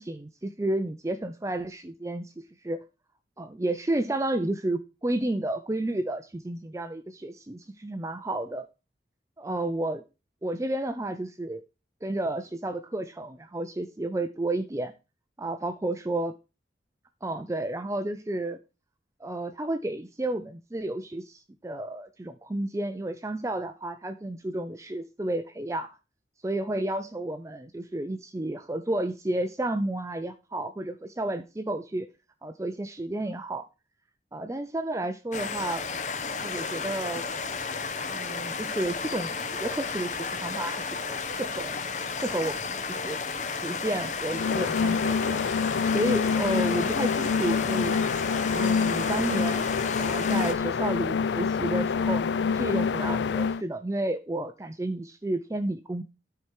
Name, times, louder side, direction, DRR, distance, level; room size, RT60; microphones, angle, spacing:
voice 1, 0.0-2.3 2.6-2.8 3.4-8.7 9.4-10.0 10.4-11.6 12.0-14.9 15.4-16.3 17.2-18.6 19.2-26.0 26.4-32.1 32.4-33.7 34.3-35.8 36.4-37.2 38.1-41.8 42.2-43.2 43.5-45.4 45.9-48.0 48.5-49.7 50.0-56.0, right 1 dB, 15° right, 0.4 m, -31 dB
sound 1, 35.3-50.5, left 5 dB, 45° left, 0.9 m, -33 dB
sound 2, 44.3-53.6, left 5 dB, 85° left, 0.4 m, -26 dB
12.5 x 4.4 x 4.7 m
head